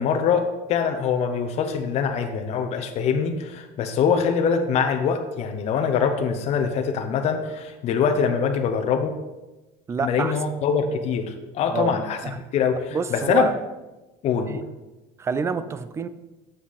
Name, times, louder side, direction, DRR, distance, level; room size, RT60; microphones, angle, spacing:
voice 1, 0.0-9.1 10.0-12.2 12.5-13.5 14.2-14.6, left 6 dB, 40° left, 6 dB, 0.7 m, -23 dB
voice 2, 9.9-10.3 11.7-11.9 12.2-12.4 12.9-13.5 14.5-14.6 15.2-16.1, right 5 dB, 15° right, 13 dB, 0.3 m, -27 dB
7.8 x 6.1 x 4.0 m, 1.1 s
cardioid pair, 145°, 17 cm